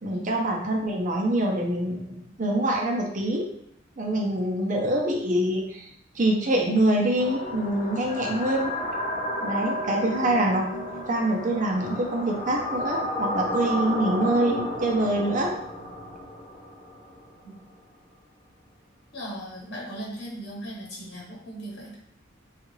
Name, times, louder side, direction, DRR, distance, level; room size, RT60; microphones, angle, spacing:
voice 1, 0.0-3.5 4.0-5.9 6.1-8.7 9.4-10.6 11.1-15.6, right 1 dB, 40° right, 0 dB, 0.6 m, -25 dB
sound 1, 7.2-17.3, left 1 dB, 35° left, 0.8 m, -32 dB
voice 2, 19.1-22.0, right 1 dB, 60° left, -4 dB, 1.0 m, -38 dB
3.7 x 2.4 x 3.1 m, 0.74 s
head